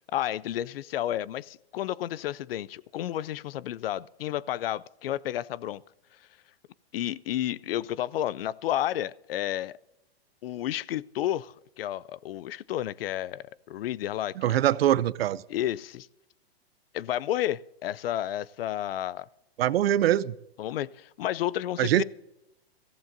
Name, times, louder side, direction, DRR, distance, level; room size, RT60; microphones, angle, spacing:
voice 1, 0.1-5.8 6.9-9.8 10.4-14.6 15.5-16.1 16.9-19.3 20.6-22.0, left 12 dB, 65° left, 0.5 m, -31 dB
voice 2, 14.4-15.4 19.6-20.4 21.8-22.0, right 12 dB, 70° right, 0.6 m, -23 dB
23.0 x 15.0 x 2.6 m
hypercardioid pair, 155°, 32 cm